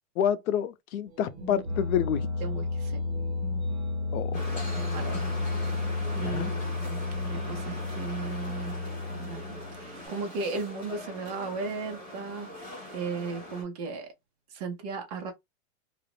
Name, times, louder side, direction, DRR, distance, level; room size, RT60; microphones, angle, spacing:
voice 1, 0.2-2.2 4.1-4.6 6.2-6.5, left 9 dB, 90° left, 0.6 m, -28 dB
sound 1, 1.2-10.0, left 3 dB, 55° right, 0.9 m, -32 dB
voice 2, 2.4-3.0 4.3-4.4 4.7-5.2 5.6-5.8 6.1-8.8 9.2-9.4 9.7-14.1 14.5-15.3, right 4 dB, 30° right, 0.6 m, -36 dB
sound 2, 4.3-13.6, left 1 dB, 10° left, 0.8 m, -41 dB
2.5 x 2.0 x 2.9 m
supercardioid pair, 175°, 41 cm